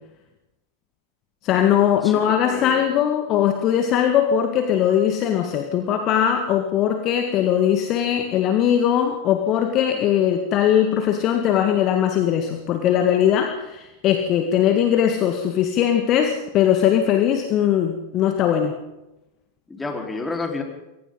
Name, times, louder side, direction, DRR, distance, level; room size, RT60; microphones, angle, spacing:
voice 1, 1.4-18.7, left 9 dB, 35° left, 5 dB, 1.9 m, -20 dB
voice 2, 2.0-2.9 9.9-10.1 19.7-20.6, left 3 dB, 10° left, 1 dB, 4.5 m, -30 dB
28.0 x 23.0 x 4.0 m, 0.95 s
figure-of-eight pair, 90°, 0 cm